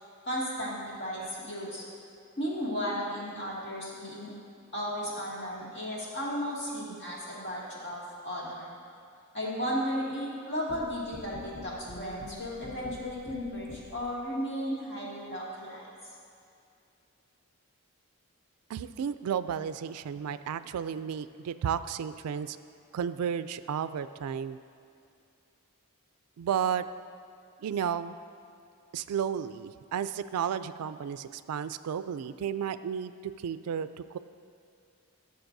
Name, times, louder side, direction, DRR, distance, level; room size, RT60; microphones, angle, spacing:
voice 1, 0.2-1.8 2.4-4.3 4.7-8.7 9.3-15.9, equal, 50° left, -6 dB, 2.2 m, -34 dB
sound 1, 10.7-14.2, left 2 dB, 15° left, 0.5 m, -45 dB
voice 2, 18.7-22.6 22.9-24.6 26.4-26.8 27.6-28.1 28.9-34.2, right 8 dB, 85° right, 13 dB, 0.3 m, -33 dB
15.5 x 6.9 x 2.6 m, 2.5 s
head